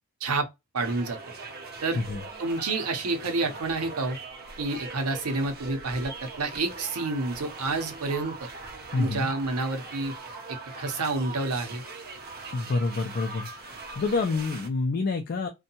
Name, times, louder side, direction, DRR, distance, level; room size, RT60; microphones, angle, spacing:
voice 1, 0.7-1.2 1.8-2.0 2.4-4.2 4.6-8.5 9.0-10.1 10.5-11.8, right 3 dB, 80° right, 0.7 m, -29 dB
sound 1, 0.8-14.7, right 3 dB, 45° right, 0.7 m, -41 dB
voice 2, 8.9-9.3 12.5-15.5, left 3 dB, 45° left, 0.4 m, -28 dB
2.6 x 2.2 x 2.7 m
head